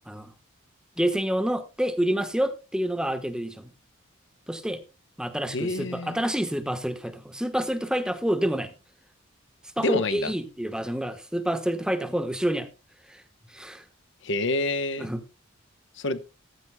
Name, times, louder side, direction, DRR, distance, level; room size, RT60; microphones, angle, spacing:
voice 1, 1.0-3.7 4.5-4.8 5.2-8.7 9.8-12.7 13.1-13.2 13.5-13.8 15.0-15.2, right 1 dB, 5° right, 1.1 m, -28 dB
voice 2, 5.5-6.2 9.8-10.3 14.2-15.1 16.0-16.2, left 2 dB, 60° left, 0.9 m, -27 dB
15.0 x 15.0 x 2.2 m
head